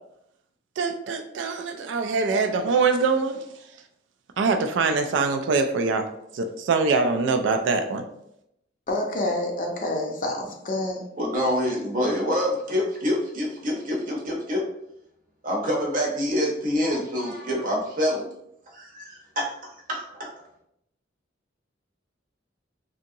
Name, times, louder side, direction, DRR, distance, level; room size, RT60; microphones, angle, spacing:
voice 1, 0.8-3.4 4.4-6.1 6.3-8.0, right 4 dB, 65° right, 6 dB, 0.3 m, -23 dB
voice 2, 8.9-11.0, left 1 dB, 45° left, 1 dB, 0.5 m, -28 dB
voice 3, 11.2-14.6 15.4-18.3 18.7-20.3, equal, 45° right, -1 dB, 0.7 m, -26 dB
2.8 x 2.6 x 2.6 m, 0.77 s
head